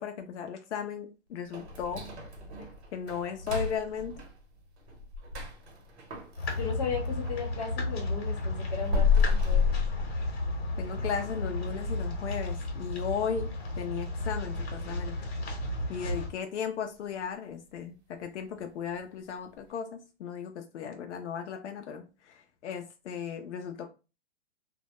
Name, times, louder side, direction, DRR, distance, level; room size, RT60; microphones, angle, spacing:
voice 1, 0.0-2.1 2.9-4.2 10.8-15.2 15.9-23.9, left 7 dB, 85° left, 0.5 m, -36 dB
sound 1, 1.5-7.5 7.8-10.7 11.0-11.1 11.6-11.7 12.3-12.6 12.9-13.0 13.5-13.6, left 5 dB, 75° right, 0.9 m, -31 dB
sound 2, 6.4-16.3, left 2 dB, 65° left, 1.0 m, -33 dB
voice 2, 6.6-9.7, left 5 dB, 40° left, 0.9 m, -36 dB
2.2 x 2.0 x 2.8 m
hypercardioid pair, 165°, 34 cm